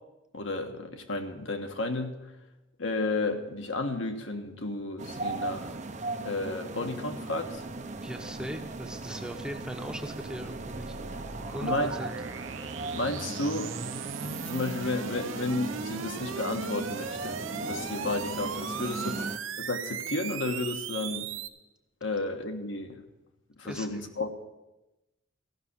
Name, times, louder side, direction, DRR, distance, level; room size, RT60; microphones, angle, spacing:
voice 1, 0.3-2.1 2.8-5.8 6.2-7.6 11.6-11.9 12.9-13.7 14.2-19.2 19.6-21.3 22.0-23.0 23.6-24.3, left 2 dB, 75° left, 4 dB, 1.4 m, -32 dB
sound 1, 5.0-19.4, right 2 dB, 35° right, 0.7 m, -38 dB
sound 2, 7.9-21.5, right 6 dB, 85° right, 0.8 m, -39 dB
voice 2, 8.0-11.0 11.5-12.2 18.8-19.2 23.6-24.0, equal, 5° right, 4 dB, 0.8 m, -40 dB
15.0 x 5.9 x 9.8 m, 0.98 s
head